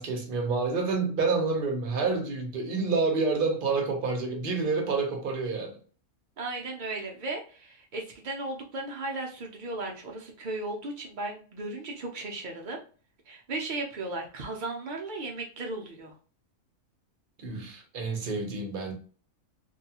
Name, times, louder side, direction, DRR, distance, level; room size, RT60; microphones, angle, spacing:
voice 1, 0.0-5.8 17.4-18.9, right 4 dB, 50° right, 0.7 m, -28 dB
voice 2, 6.4-12.8 13.3-16.1, right 2 dB, 80° right, 0.4 m, -36 dB
2.6 x 2.3 x 2.8 m
omnidirectional pair, 1.5 m